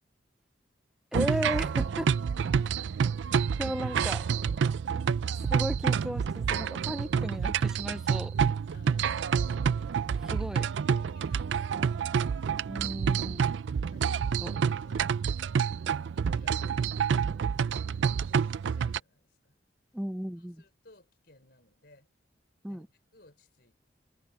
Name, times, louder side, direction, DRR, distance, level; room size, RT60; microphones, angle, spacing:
voice 1, 1.1-2.1 3.6-4.3 5.5-8.3 10.3-10.7 11.4-11.5 12.7-13.4 14.4-14.5 19.9-20.6 22.6-22.9, equal, 5° right, 0.3 m, -35 dB
sound 1, 1.1-19.0, right 6 dB, 70° right, 0.4 m, -28 dB
voice 2, 8.7-10.4 10.9-12.2 13.5-15.6 16.1-17.0 18.2-19.6 20.4-22.1 22.7-23.9, left 2 dB, 55° left, 5.3 m, -59 dB
head